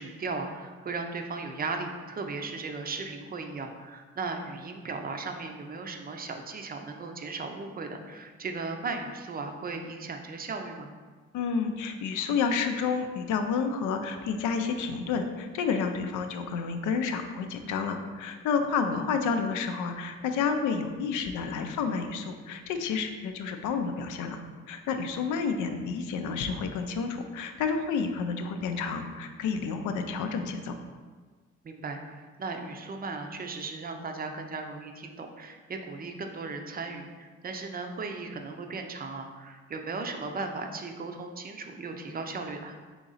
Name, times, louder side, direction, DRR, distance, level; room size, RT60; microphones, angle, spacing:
voice 1, 0.0-10.9 18.9-19.0 31.6-42.8, right 3 dB, 30° right, 5 dB, 0.5 m, -36 dB
voice 2, 11.3-24.4 24.7-30.8, left 5 dB, 80° left, 6 dB, 0.5 m, -30 dB
3.9 x 2.9 x 3.9 m, 1.4 s
cardioid pair, 90°, 30 cm